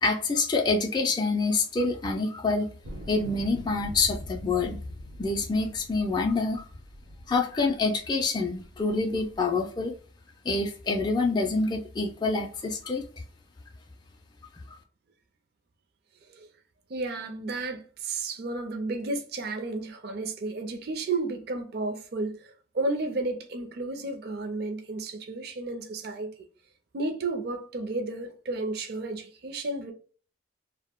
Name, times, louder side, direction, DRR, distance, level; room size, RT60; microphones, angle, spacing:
voice 1, 0.0-2.7 3.1-4.8 5.2-6.6 7.3-9.9 10.5-13.1 14.7-14.8, left 3 dB, 20° left, 0.3 m, -26 dB
sound 1, 2.8-8.1 8.6-9.4, equal, 85° right, 0.8 m, -44 dB
voice 2, 16.9-26.3 26.9-29.9, right 2 dB, 55° right, 0.4 m, -32 dB
2.1 x 2.1 x 3.4 m
head